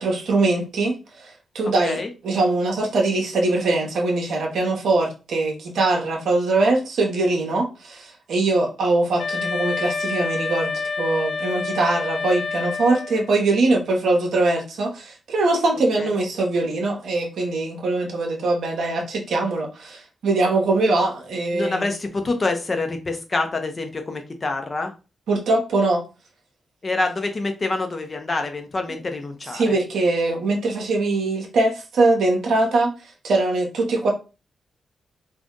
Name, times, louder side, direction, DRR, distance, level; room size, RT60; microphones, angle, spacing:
voice 1, 0.0-21.9 25.3-26.0 29.5-32.9 33.2-34.1, right 2 dB, 75° right, 0.7 m, -22 dB
Wind instrument woodwind instrument, 9.2-13.4, left 4 dB, 70° left, 0.5 m, -28 dB
voice 2, 21.5-24.9 26.8-29.7, left 3 dB, 45° left, 0.8 m, -26 dB
2.6 x 2.5 x 3.6 m
supercardioid pair, 40°, 0 cm